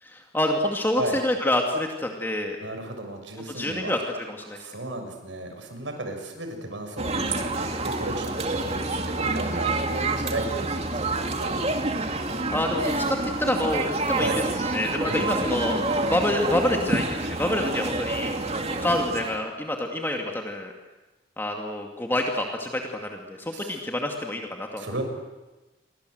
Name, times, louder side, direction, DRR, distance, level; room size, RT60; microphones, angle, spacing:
voice 1, 0.0-2.6 3.5-4.6 12.5-14.3 14.7-15.8 16.1-18.3 18.8-20.7 21.4-24.8, left 1 dB, 10° left, 2 dB, 2.3 m, -27 dB
voice 2, 2.6-3.9 4.5-11.5 14.2-14.4 15.1-15.3 23.5-23.8 24.8-25.0, right 2 dB, 85° right, 5 dB, 6.5 m, -34 dB
sound 1, 7.0-19.4, right 2 dB, 35° right, 2.5 m, -28 dB
28.5 x 24.5 x 8.0 m, 1.1 s
head